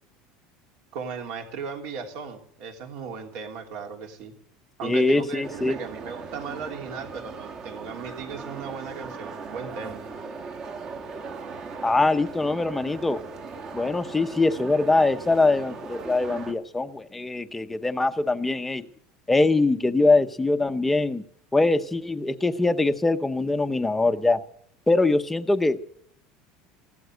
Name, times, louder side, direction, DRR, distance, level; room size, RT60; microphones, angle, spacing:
voice 1, 0.9-4.3 4.8-10.0, right 5 dB, 60° right, 3 dB, 3.3 m, -37 dB
voice 2, 4.8-5.8 11.8-13.2 13.7-18.9 19.3-21.2 21.5-24.4 24.9-25.9, left 2 dB, 5° left, 9 dB, 0.8 m, -23 dB
sound 1, 5.4-16.5, right 4 dB, 30° right, 1.5 m, -39 dB
15.5 x 13.0 x 6.5 m, 0.65 s
cardioid pair, 160°, 2 cm